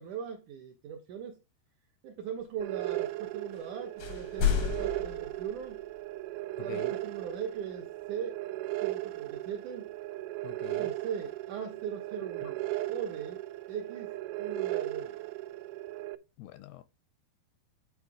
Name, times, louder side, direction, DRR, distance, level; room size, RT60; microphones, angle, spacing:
voice 1, 0.0-1.4 2.0-5.8 6.6-8.4 8.8-9.9 10.7-13.4 13.7-15.2, right 7 dB, 65° right, 2.2 m, -40 dB
sound 1, 2.6-16.2, right 17 dB, 85° right, 2.7 m, -37 dB
sound 2, 3.5-3.7 4.0-6.0, left 8 dB, 65° left, 1.3 m, -32 dB
voice 2, 6.6-6.9 10.4-10.9 12.4-12.5 16.4-16.8, left 12 dB, 80° left, 2.5 m, -45 dB
10.0 x 4.6 x 4.9 m
omnidirectional pair, 4.9 m